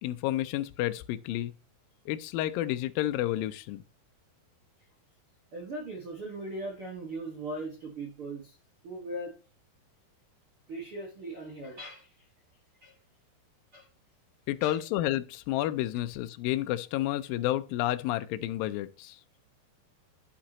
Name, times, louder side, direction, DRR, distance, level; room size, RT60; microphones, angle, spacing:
voice 1, 0.0-1.5 2.1-3.8 14.5-19.2, left 14 dB, 85° left, 2.1 m, -30 dB
voice 2, 5.5-8.6 8.8-9.3 10.7-12.3 12.8-12.9 13.7-13.9 14.6-14.8, right 2 dB, 55° right, 1.6 m, -39 dB
11.5 x 6.0 x 2.9 m
omnidirectional pair, 4.7 m